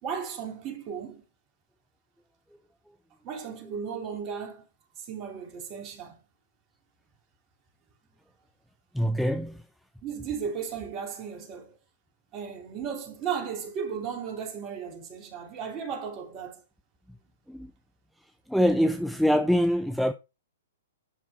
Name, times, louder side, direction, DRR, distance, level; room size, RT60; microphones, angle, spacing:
voice 1, 0.0-1.2 3.2-4.6 5.0-6.2 10.0-11.8 12.3-16.6, right 7 dB, 30° right, 3.1 m, -35 dB
voice 2, 8.9-9.6 17.5-17.7 18.5-20.1, equal, ahead, 0.5 m, -24 dB
10.5 x 6.0 x 4.2 m
figure-of-eight pair, 115°, 0 cm